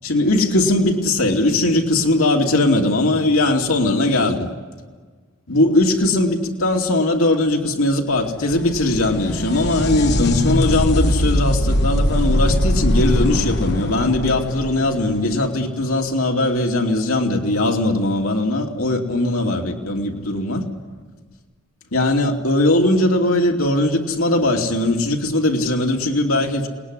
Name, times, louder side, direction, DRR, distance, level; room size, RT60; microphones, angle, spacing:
voice 1, 0.0-4.5 5.5-20.6 21.9-26.7, left 2 dB, 70° left, 2 dB, 2.9 m, -19 dB
sound 1, 8.2-15.8 19.2-19.3 20.4-20.5, left 1 dB, 50° left, 1.3 m, -21 dB
28.5 x 20.0 x 9.9 m, 1.5 s
head